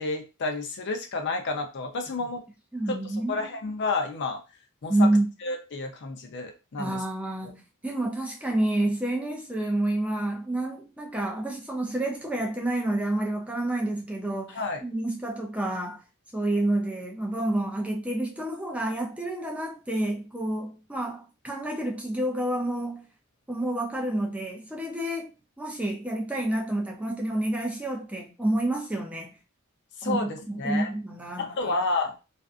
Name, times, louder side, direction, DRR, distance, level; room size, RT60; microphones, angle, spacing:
voice 1, 0.0-2.4 2.9-3.0 3.3-4.4 4.8-5.1 5.4-7.0 14.5-14.8 30.0-30.9 31.4-32.1, left 3 dB, 50° left, 0.5 m, -30 dB
voice 2, 2.7-3.5 4.9-5.3 6.8-16.0 16.3-23.0 23.5-29.3 30.0-31.7, right 1 dB, 5° right, 0.4 m, -29 dB
2.5 x 2.3 x 2.4 m
head